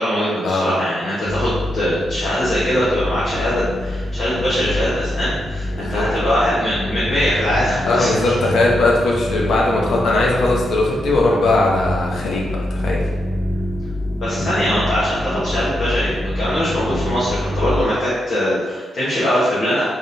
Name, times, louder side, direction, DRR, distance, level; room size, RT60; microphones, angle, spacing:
voice 1, 0.0-8.3 14.2-19.8, equal, 45° left, -11 dB, 1.2 m, -21 dB
sound 1, 1.2-17.8, left 1 dB, 15° left, 0.5 m, -26 dB
voice 2, 5.7-6.0 7.9-13.0, left 2 dB, 65° left, -3 dB, 0.8 m, -19 dB
3.7 x 3.6 x 2.8 m, 1.5 s
wide cardioid pair, 165°, 0 cm